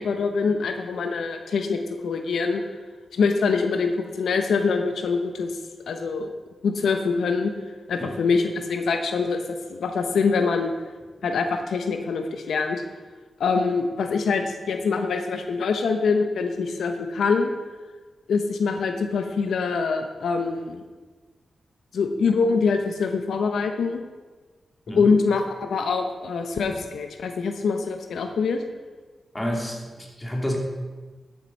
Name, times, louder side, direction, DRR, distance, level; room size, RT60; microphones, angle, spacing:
voice 1, 0.0-2.6 3.1-5.6 5.9-6.3 6.6-7.5 7.9-10.7 11.2-12.8 13.4-17.5 18.3-20.8 21.9-24.0 24.9-28.6, left 4 dB, 90° left, 6 dB, 0.9 m, -24 dB
voice 2, 29.3-30.6, equal, 15° left, 0 dB, 2.6 m, -29 dB
12.5 x 7.7 x 5.4 m, 1.3 s
cardioid pair, 85°, 0 cm